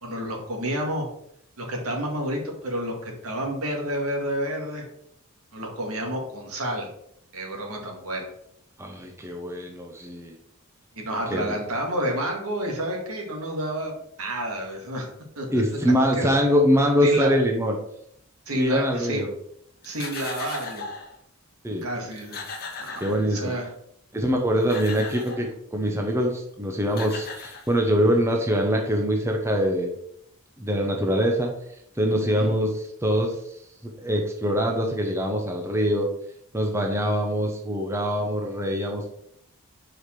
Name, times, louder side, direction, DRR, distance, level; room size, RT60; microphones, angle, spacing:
voice 1, 0.0-1.1 1.6-4.9 5.5-6.9 7.3-8.3 10.9-15.1 15.4-16.3 17.0-17.3 18.5-19.3 19.8-20.8 21.8-22.4 22.8-23.7 32.3-32.5, right 1 dB, 75° right, 0 dB, 2.0 m, -30 dB
voice 2, 8.8-10.3 11.3-11.5 15.5-17.8 18.5-19.3 21.6-21.9 23.0-23.5 24.1-29.9 30.6-31.5 32.0-33.4 34.0-36.1 36.5-39.1, equal, 10° right, 2 dB, 0.8 m, -23 dB
sound 1, 19.8-21.1 21.8-21.9 22.1-23.7 24.4-25.5 26.5-26.6 26.9-28.1, left 4 dB, 45° left, 1.0 m, -38 dB
5.0 x 5.0 x 5.9 m, 0.72 s
head